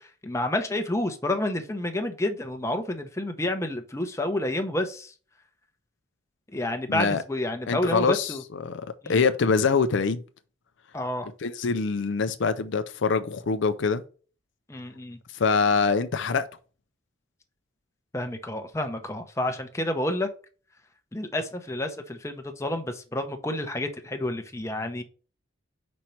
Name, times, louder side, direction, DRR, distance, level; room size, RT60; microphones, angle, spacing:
voice 1, 0.2-5.1 6.5-8.4 9.0-9.2 10.9-11.3 14.7-15.2 18.1-20.3 21.1-25.0, left 1 dB, 15° left, 0.7 m, -29 dB
voice 2, 6.9-7.2 7.7-8.3 8.6-10.2 11.4-14.0 15.4-16.5, left 5 dB, 65° left, 0.5 m, -24 dB
5.3 x 4.5 x 4.4 m
head